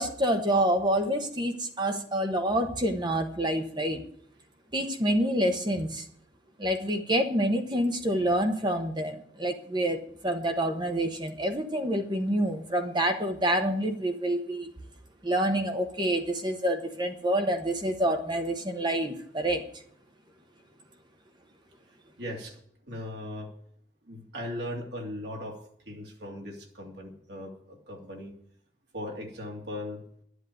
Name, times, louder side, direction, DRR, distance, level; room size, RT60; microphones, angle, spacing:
voice 1, 0.0-4.0 4.7-6.0 6.6-14.7 15.2-19.6, right 1 dB, 25° right, 5 dB, 1.2 m, -27 dB
voice 2, 22.2-22.6 22.9-23.5 24.1-25.6 25.9-28.3 28.9-30.0, left 1 dB, 70° right, 0 dB, 2.9 m, -38 dB
11.5 x 8.1 x 7.8 m, 0.66 s
head